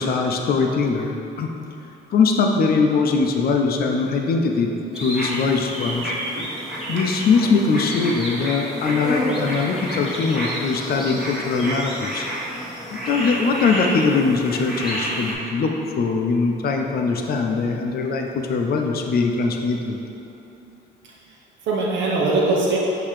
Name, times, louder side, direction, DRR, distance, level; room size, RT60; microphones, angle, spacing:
voice 1, 0.0-1.5 2.1-6.1 6.9-12.3 12.9-20.0, left 4 dB, 50° left, 2 dB, 0.5 m, -21 dB
sound 1, 4.9-15.3, equal, 5° right, 1.1 m, -29 dB
voice 2, 20.6-21.1 21.6-22.8, right 3 dB, 70° right, -4 dB, 0.8 m, -22 dB
5.6 x 2.8 x 3.2 m, 2.8 s
cardioid pair, 90°, 20 cm